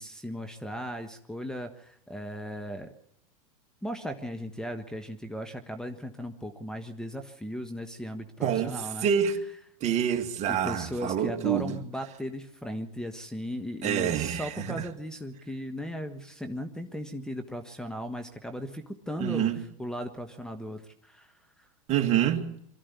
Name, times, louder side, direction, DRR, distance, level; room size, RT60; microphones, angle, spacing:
voice 1, 0.0-2.9 3.8-9.1 10.5-19.5 19.8-21.7, equal, 5° left, 1.3 m, -37 dB
voice 2, 8.4-9.4 9.8-11.8 13.8-14.9 19.2-19.6 21.9-22.5, right 9 dB, 40° right, 2.3 m, -27 dB
23.5 x 13.5 x 8.2 m
hypercardioid pair, 115°, 18 cm